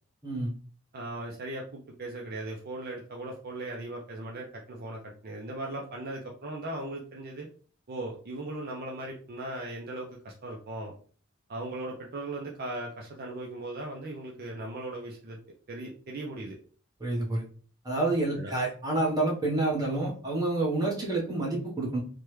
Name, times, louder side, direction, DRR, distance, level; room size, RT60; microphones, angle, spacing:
voice 1, 0.2-0.5 17.0-17.4 17.8-22.0, right 2 dB, 20° right, -3 dB, 1.0 m, -28 dB
voice 2, 0.9-7.5 7.9-10.9 11.5-15.4 15.7-16.6 18.3-18.5, right 2 dB, 50° right, -1 dB, 0.5 m, -38 dB
3.4 x 2.2 x 3.0 m, 0.42 s
head